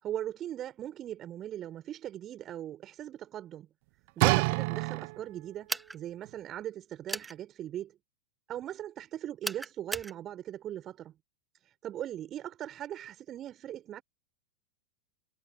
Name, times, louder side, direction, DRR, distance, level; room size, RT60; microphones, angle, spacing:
voice 1, 0.0-3.7 4.2-8.0 8.5-11.1 11.8-14.0, right 11 dB, 30° right, 5.5 m, -39 dB
sound 1, 4.2-5.5 6.2-6.3, right 29 dB, 45° right, 1.1 m, -27 dB
sound 2, 5.7-6.0 7.1-7.3 9.4-10.1, right 3 dB, 10° right, 2.2 m, -35 dB
figure-of-eight pair, 90°, 0 cm